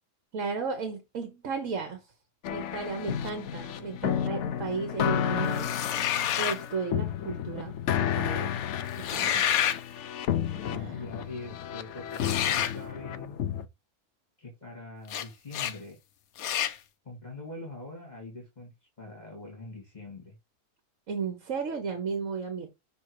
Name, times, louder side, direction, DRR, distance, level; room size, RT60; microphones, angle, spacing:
voice 1, 0.3-2.1 2.5-5.7 6.4-8.5 9.0-9.4 10.6-11.0 21.1-22.7, right 5 dB, 65° right, 1.5 m, -34 dB
sound 1, 2.4-13.7, left 9 dB, 65° left, 0.8 m, -32 dB
sound 2, 5.6-6.6 8.9-9.8 12.2-12.8 15.1-15.3 15.5-15.8 16.4-16.8, left 10 dB, 85° left, 1.1 m, -28 dB
voice 2, 10.6-13.4 14.4-16.0 17.0-18.7 19.0-20.3, left 2 dB, 30° left, 2.3 m, -43 dB
6.3 x 3.4 x 4.7 m
omnidirectional pair, 1.5 m